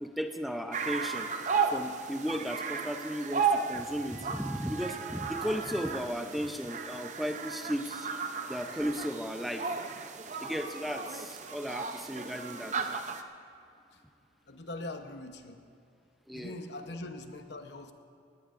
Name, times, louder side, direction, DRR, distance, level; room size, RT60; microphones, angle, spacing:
voice 1, 0.0-1.3 1.7-8.1 8.5-9.7 10.4-12.8 16.3-16.5, equal, ahead, 5 dB, 0.5 m, -35 dB
sound 1, 0.7-13.2, right 5 dB, 40° right, 0.6 m, -35 dB
voice 2, 14.5-15.6 16.3-17.9, left 2 dB, 70° left, 6 dB, 0.9 m, -42 dB
19.0 x 18.5 x 2.5 m, 2.4 s
head